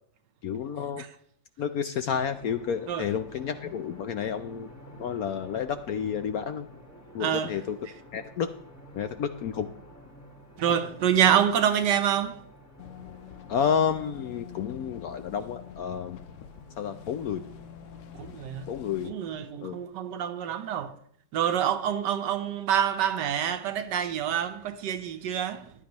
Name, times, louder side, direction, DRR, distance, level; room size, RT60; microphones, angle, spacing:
voice 1, 0.4-1.0 1.6-4.7 5.0-6.7 7.1-7.8 8.1-8.5 8.9-9.7 13.5-16.2 16.8-17.4 18.7-19.2 19.6-19.8, left 7 dB, 65° left, 0.9 m, -30 dB
sound 1, 2.1-19.9, equal, 10° left, 1.1 m, -51 dB
voice 2, 7.2-7.6 10.6-12.4 18.2-18.7 19.0-21.0 21.3-25.7, right 9 dB, 70° right, 1.3 m, -27 dB
sound 2, 12.8-19.1, left 10 dB, 90° left, 0.6 m, -46 dB
15.0 x 11.0 x 3.0 m
omnidirectional pair, 2.0 m